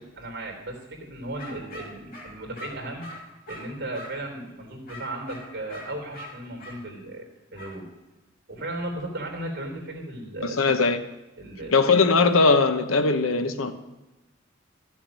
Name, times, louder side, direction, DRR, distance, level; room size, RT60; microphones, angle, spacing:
voice 1, 0.2-3.1 3.5-7.9 8.5-10.7 11.4-11.8, right 1 dB, 55° right, 0 dB, 3.5 m, -36 dB
sound 1, 1.4-4.3 4.9-6.8 7.5-7.8 11.9-12.5, left 1 dB, 45° left, 3.0 m, -43 dB
voice 2, 10.4-11.0 11.7-13.7, left 4 dB, 90° left, 9 dB, 0.9 m, -20 dB
14.5 x 7.3 x 6.1 m, 1.1 s
head